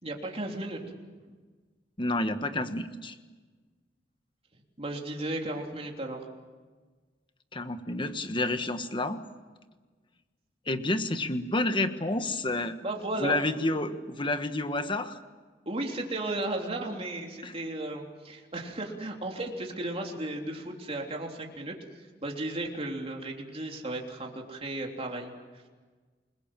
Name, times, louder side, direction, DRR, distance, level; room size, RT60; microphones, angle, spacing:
voice 1, 0.0-0.8 4.8-6.3 12.8-13.4 15.6-25.3, right 2 dB, 35° right, 1 dB, 3.3 m, -35 dB
voice 2, 2.0-3.1 7.5-9.2 10.7-12.8 13.2-15.2 17.4-17.5, left 2 dB, 30° left, 9 dB, 1.4 m, -29 dB
29.0 x 21.0 x 7.5 m, 1.4 s
head